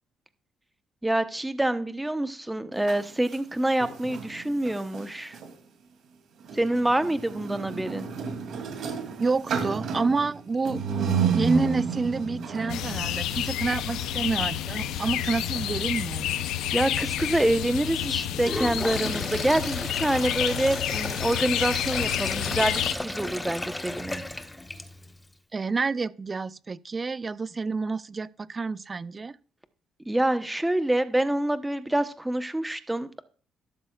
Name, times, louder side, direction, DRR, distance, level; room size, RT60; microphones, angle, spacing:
voice 1, 1.0-5.4 6.5-8.1 16.7-24.2 30.1-33.2, right 1 dB, 10° right, 1.0 m, -26 dB
sound 1, 2.7-5.5 6.4-19.1, right 5 dB, 70° right, 2.7 m, -33 dB
voice 2, 9.2-10.8 11.3-16.4 25.5-29.4, right 4 dB, 30° right, 0.5 m, -29 dB
sound 2, 12.7-22.9, left 11 dB, 90° left, 0.6 m, -29 dB
Sink (filling or washing), 18.3-25.2, left 1 dB, 10° left, 1.1 m, -34 dB
12.5 x 12.0 x 2.4 m
cardioid pair, 90°, 0 cm